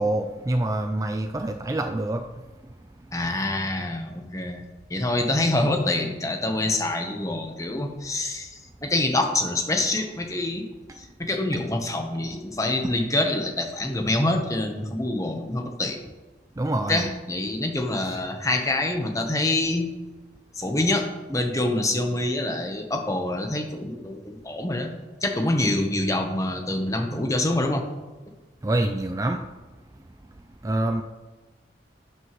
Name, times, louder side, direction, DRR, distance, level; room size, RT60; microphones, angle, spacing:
voice 1, 0.0-2.3 10.9-11.0 16.6-17.1 18.0-18.2 28.6-29.4 30.6-31.0, right 1 dB, 20° right, 6 dB, 0.4 m, -26 dB
voice 2, 3.1-4.6 4.9-8.5 8.8-10.7 11.0-16.0 16.9-19.9 20.6-24.9 25.2-27.8, left 2 dB, 20° left, 4 dB, 1.0 m, -26 dB
11.5 x 7.9 x 3.1 m, 1.2 s
head